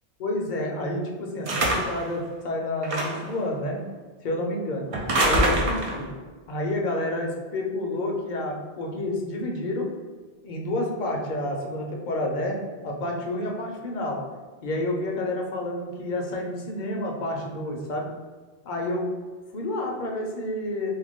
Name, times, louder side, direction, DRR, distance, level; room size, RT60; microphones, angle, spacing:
voice 1, 0.2-3.8 4.2-4.9 5.1-6.1 6.5-9.9 10.4-12.6 12.8-14.2 14.6-18.1 18.7-19.1 19.5-20.9, left 1 dB, 55° left, 0 dB, 0.7 m, -29 dB
sound 1, 1.5-2.1 2.8-3.3 4.9-6.1, right 1 dB, 50° right, 0.4 m, -24 dB
2.8 x 2.4 x 3.6 m, 1.4 s
omnidirectional pair, 1.0 m